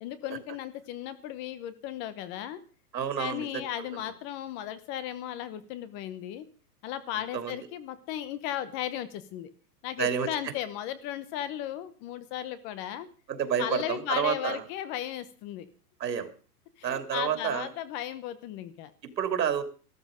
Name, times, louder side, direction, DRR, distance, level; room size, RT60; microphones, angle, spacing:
voice 1, 0.0-2.6 3.2-6.4 6.8-9.5 9.8-13.1 13.6-15.7 16.8-18.9, left 11 dB, 25° left, 14 dB, 0.9 m, -35 dB
voice 2, 2.9-3.6 7.3-7.6 10.0-10.3 13.3-14.6 16.0-16.3 16.8-17.7 19.0-19.6, right 8 dB, 85° right, 8 dB, 3.1 m, -29 dB
14.0 x 13.0 x 5.1 m, 0.38 s
hypercardioid pair, 155°, 49 cm